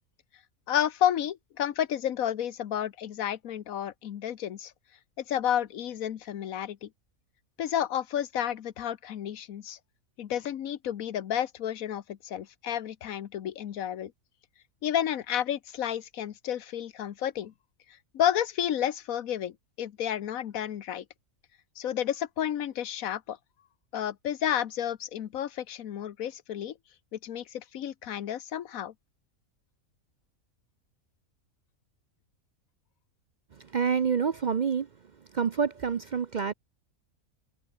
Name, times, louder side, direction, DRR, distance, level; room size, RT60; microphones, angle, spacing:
voice 1, 0.7-4.7 5.3-6.9 7.6-9.8 10.2-14.1 14.8-17.5 18.1-21.0 21.8-23.4 23.9-26.7 27.1-28.9, left 10 dB, 90° left, 1.4 m, -31 dB
voice 2, 33.6-34.9 35.3-36.5, right 6 dB, 50° right, 0.6 m, -27 dB
omnidirectional pair, 1.4 m